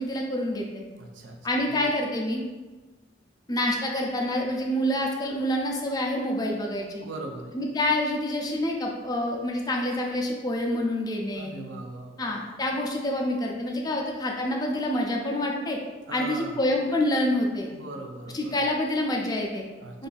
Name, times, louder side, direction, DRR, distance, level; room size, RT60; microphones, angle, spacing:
voice 1, 0.0-0.8 1.4-2.4 3.5-7.0 7.5-11.5 12.2-15.8 16.1-17.7 18.3-19.6 20.0-20.1, left 1 dB, 20° left, 0 dB, 0.4 m, -27 dB
voice 2, 1.0-1.4 1.7-1.9 7.0-7.6 11.4-12.2 16.1-16.6 17.7-18.6 19.8-20.1, right 2 dB, 75° right, 2 dB, 0.5 m, -39 dB
2.6 x 2.4 x 3.8 m, 1.2 s
head